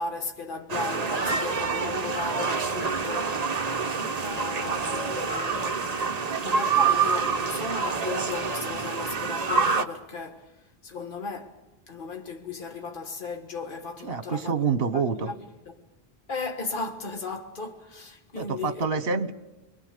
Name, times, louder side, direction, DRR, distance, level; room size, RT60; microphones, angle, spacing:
voice 1, 0.0-3.3 4.2-5.9 6.4-10.5 10.8-11.6 11.9-15.4 15.6-15.7 16.3-18.8, left 4 dB, 55° left, 1.7 m, -36 dB
sound 1, 0.7-9.8, right 5 dB, 40° right, 1.0 m, -27 dB
voice 2, 14.0-15.3 18.3-19.3, right 5 dB, 70° right, 1.4 m, -27 dB
28.0 x 21.5 x 6.8 m
omnidirectional pair, 1.0 m